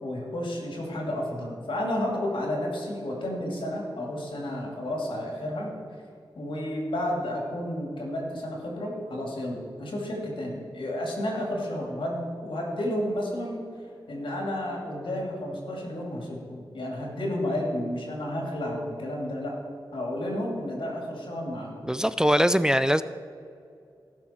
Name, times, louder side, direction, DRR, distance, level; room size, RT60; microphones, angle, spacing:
voice 1, 0.0-5.7 6.3-13.6 14.1-19.6 19.9-21.9, left 1 dB, 85° left, -1 dB, 2.6 m, -31 dB
voice 2, 21.9-23.0, equal, 10° right, 13 dB, 0.3 m, -21 dB
16.5 x 6.4 x 4.4 m, 2.4 s
wide cardioid pair, 70°, 8 cm